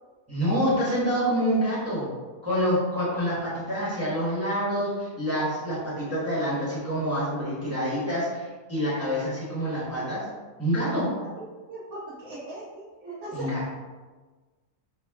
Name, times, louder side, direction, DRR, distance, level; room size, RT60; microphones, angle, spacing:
voice 1, 0.3-2.1 2.4-10.3 10.6-11.1 13.3-13.6, equal, 10° right, -8 dB, 1.1 m, -27 dB
voice 2, 11.7-13.5, right 1 dB, 70° right, -10 dB, 1.4 m, -39 dB
5.0 x 2.2 x 3.5 m, 1.3 s
omnidirectional pair, 1.5 m